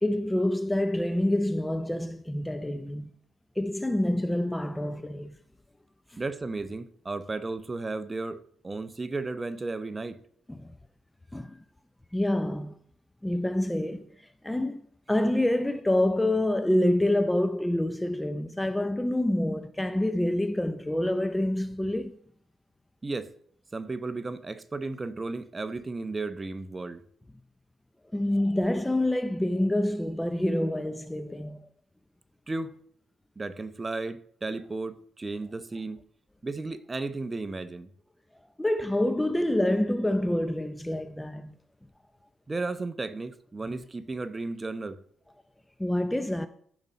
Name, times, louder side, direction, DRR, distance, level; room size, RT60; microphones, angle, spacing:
voice 1, 0.0-3.1 3.6-5.4 10.5-10.7 11.3-11.6 12.1-12.8 13.2-14.1 14.4-22.1 28.1-31.7 38.6-41.5 45.8-46.5, left 1 dB, 10° left, 0.5 m, -27 dB
voice 2, 6.2-10.2 23.0-23.3 23.7-27.0 32.5-32.7 33.4-36.0 36.4-37.9 42.5-45.0, right 3 dB, 25° right, 0.8 m, -34 dB
15.0 x 5.3 x 4.2 m
cardioid pair, 90°, 0 cm